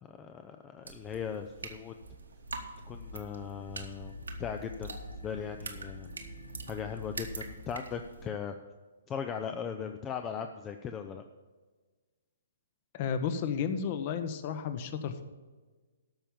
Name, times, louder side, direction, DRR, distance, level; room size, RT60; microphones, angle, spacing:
voice 1, 0.0-2.0 2.8-4.1 4.4-4.9 5.2-6.1 6.7-8.5 9.1-11.2, left 7 dB, 20° left, 6 dB, 0.5 m, -38 dB
sound 1, 0.8-8.3, right 3 dB, 70° right, 1.5 m, -45 dB
sound 2, 2.0-7.6, left 2 dB, 80° left, 1.3 m, -47 dB
voice 2, 12.9-15.2, left 7 dB, 35° left, 10 dB, 0.9 m, -32 dB
13.5 x 5.7 x 7.0 m, 1.3 s
figure-of-eight pair, 125°, 0 cm